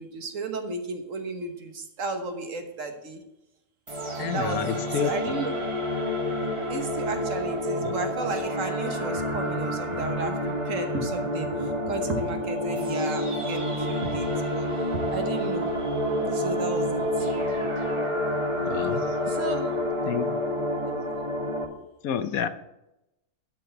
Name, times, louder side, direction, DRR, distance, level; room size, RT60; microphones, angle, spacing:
voice 1, 0.0-3.2 4.0-5.5 6.6-14.8 15.1-15.7 16.2-17.3 19.3-19.7 20.7-20.9, right 3 dB, 60° right, 5 dB, 1.6 m, -34 dB
sound 1, 3.9-21.6, left 1 dB, 20° right, 1.2 m, -28 dB
voice 2, 4.2-5.1 7.8-7.9 18.7-19.2 20.1-20.3 22.0-22.5, left 8 dB, 75° left, 11 dB, 1.1 m, -29 dB
12.0 x 4.6 x 6.7 m, 0.89 s
omnidirectional pair, 1.6 m